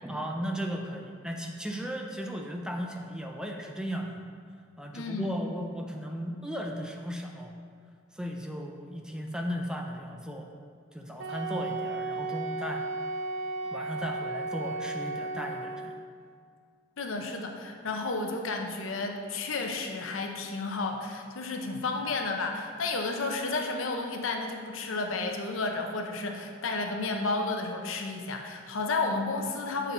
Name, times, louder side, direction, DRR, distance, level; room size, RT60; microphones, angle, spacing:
voice 1, 0.0-4.2 4.8-7.5 8.1-10.5 10.9-12.9 13.7-15.9, equal, 5° right, 2 dB, 0.4 m, -36 dB
voice 2, 4.9-5.4 17.0-29.9, left 3 dB, 80° left, 3 dB, 0.7 m, -32 dB
Wind instrument woodwind instrument, 11.2-16.1, right 2 dB, 75° right, 0.5 m, -34 dB
7.4 x 4.0 x 4.1 m, 2.1 s
head